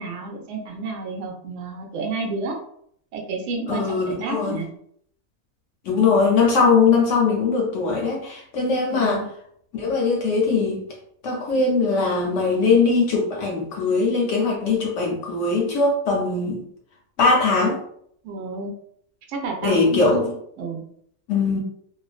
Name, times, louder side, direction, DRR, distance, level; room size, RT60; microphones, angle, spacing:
voice 1, 0.0-2.6 3.1-4.7 8.9-9.3 18.2-18.7 19.3-20.8, right 4 dB, 65° right, 1 dB, 0.8 m, -30 dB
voice 2, 3.7-4.6 5.8-9.2 9.7-10.8 11.2-16.6 17.2-17.8 19.6-20.2 21.3-21.6, left 4 dB, 65° left, -1 dB, 0.8 m, -20 dB
2.4 x 2.2 x 2.3 m, 0.68 s
omnidirectional pair, 1.5 m